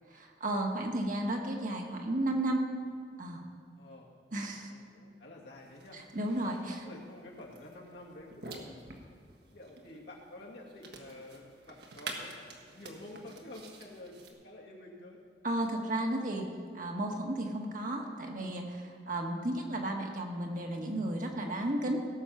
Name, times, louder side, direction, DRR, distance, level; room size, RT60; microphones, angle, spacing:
voice 1, 0.1-2.6 3.2-3.4 4.3-4.7 5.9-6.8 15.4-16.5 16.7-22.0, right 1 dB, 50° right, 1 dB, 1.4 m, -33 dB
voice 2, 3.8-4.1 4.7-6.0 6.8-8.8 9.5-15.2, left 1 dB, 75° left, -3 dB, 2.4 m, -49 dB
sound 1, 5.6-14.3, right 3 dB, 65° right, 1.5 m, -49 dB
17.0 x 7.2 x 5.7 m, 2.2 s
head